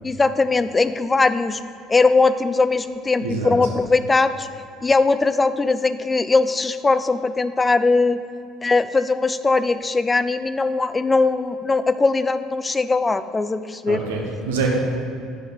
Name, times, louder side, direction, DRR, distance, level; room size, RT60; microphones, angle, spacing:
voice 1, 0.0-1.6 1.9-4.5 4.8-8.2 8.6-14.0, left 3 dB, 20° left, 13 dB, 0.4 m, -20 dB
voice 2, 3.2-3.6 13.9-14.8, right 4 dB, 70° right, 0 dB, 1.3 m, -25 dB
10.5 x 5.2 x 4.0 m, 2.5 s
figure-of-eight pair, 60°, 0 cm